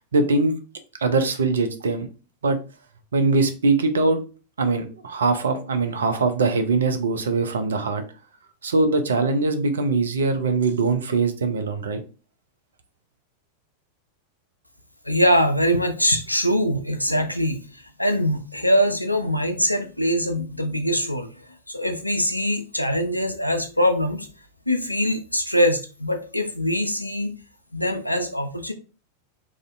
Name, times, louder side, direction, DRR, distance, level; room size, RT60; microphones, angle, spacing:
voice 1, 0.1-0.6 1.0-2.1 2.4-2.6 3.1-4.2 4.6-8.0 8.6-12.0, right 3 dB, 70° right, 0.3 m, -22 dB
voice 2, 15.0-24.3 24.7-27.4 27.7-28.7, equal, 90° left, 0.3 m, -23 dB
2.4 x 2.0 x 2.5 m
figure-of-eight pair, 90°, 0 cm